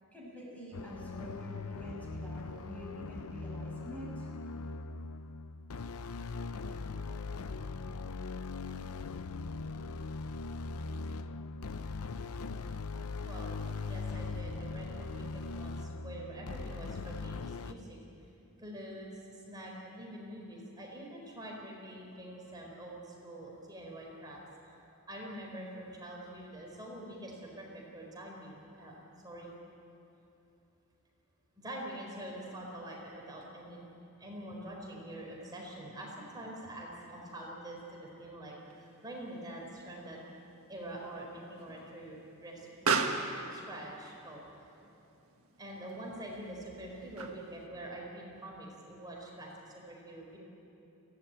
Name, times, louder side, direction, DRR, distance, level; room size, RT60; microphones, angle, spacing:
voice 1, 0.1-4.3, equal, 5° left, -5 dB, 6.3 m, -46 dB
sound 1, 0.7-17.7, left 3 dB, 75° left, 0.7 m, -40 dB
voice 2, 13.1-18.0 18.6-24.8 25.1-29.5 31.6-33.9 34.2-37.8 38.2-40.2 40.7-44.4 45.6-50.4, right 1 dB, 20° right, -2 dB, 4.4 m, -45 dB
Explosion, 38.7-47.7, right 4 dB, 65° right, 1.6 m, -39 dB
23.0 x 16.5 x 8.9 m, 2.9 s
head